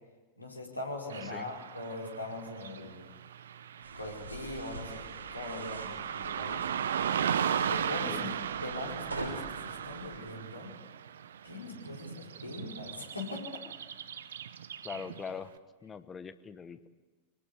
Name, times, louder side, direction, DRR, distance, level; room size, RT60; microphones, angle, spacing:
voice 1, 0.4-3.1 3.9-5.0 5.3-6.7 7.5-10.7 11.4-13.4, left 2 dB, 85° left, -1 dB, 4.8 m, -41 dB
Car passing by / Traffic noise roadway noise, 1.1-15.4, right 8 dB, 65° right, 0.9 m, -37 dB
voice 2, 1.2-1.5 8.1-8.3 14.8-15.5 15.8-16.9, left 6 dB, 20° left, 12 dB, 1.3 m, -42 dB
sound 1, 3.8-10.2, right 2 dB, 85° right, 3.9 m, -46 dB
25.5 x 19.5 x 8.3 m, 1.3 s
figure-of-eight pair, 90°, 0 cm